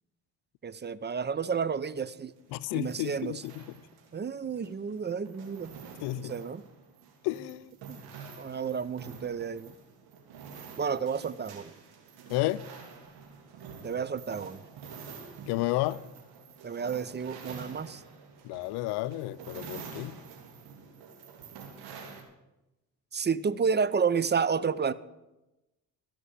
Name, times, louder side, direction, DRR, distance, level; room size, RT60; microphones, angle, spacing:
voice 1, 0.6-2.3 2.7-3.4 4.1-5.7 6.2-6.6 7.9-8.0 8.4-9.7 10.8-11.7 13.8-14.6 16.6-18.0 23.1-24.9, right 6 dB, 30° right, 0.6 m, -31 dB
sound 1, 2.3-22.2, right 5 dB, 80° right, 2.9 m, -48 dB
voice 2, 2.5-3.8 6.0-6.3 7.2-7.7 12.3-12.6 15.5-16.0 18.4-20.2, left 17 dB, 80° left, 0.5 m, -32 dB
13.5 x 6.1 x 8.2 m
supercardioid pair, 65°, 38 cm